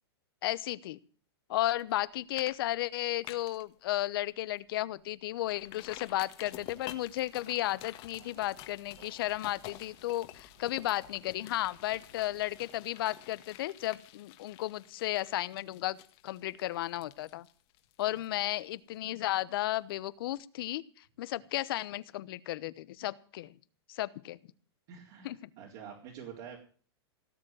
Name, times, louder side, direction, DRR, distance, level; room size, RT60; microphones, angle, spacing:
voice 1, 0.4-1.0 1.5-16.0 16.2-17.5 18.0-20.8 21.2-23.5 23.9-24.4 25.2-25.4, left 15 dB, 60° left, 18 dB, 0.9 m, -34 dB
sound 1, 1.8-2.0 2.3-2.6 2.9-3.6 4.1-4.2 4.6-4.7 5.5-19.0 19.3-19.4, left 14 dB, 40° left, 1.6 m, -50 dB
sound 2, 6.6-12.6, right 4 dB, 85° right, 5.4 m, -63 dB
voice 2, 24.9-26.6, right 8 dB, 45° right, -1 dB, 4.1 m, -47 dB
17.5 x 7.4 x 9.0 m, 0.42 s
hypercardioid pair, 145°, 14 cm